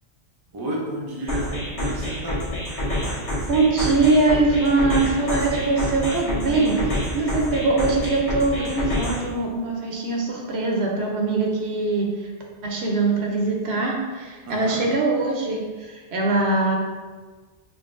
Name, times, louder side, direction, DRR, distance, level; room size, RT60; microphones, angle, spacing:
voice 1, 0.5-1.5 1.8-2.4 14.4-14.8, right 1 dB, 25° right, -3 dB, 0.5 m, -31 dB
sound 1, 1.3-9.3, equal, 35° left, 1.0 m, -28 dB
voice 2, 3.5-12.3 12.6-16.8, right 3 dB, 70° right, 0 dB, 0.9 m, -22 dB
5.1 x 2.6 x 2.5 m, 1.4 s
omnidirectional pair, 1.2 m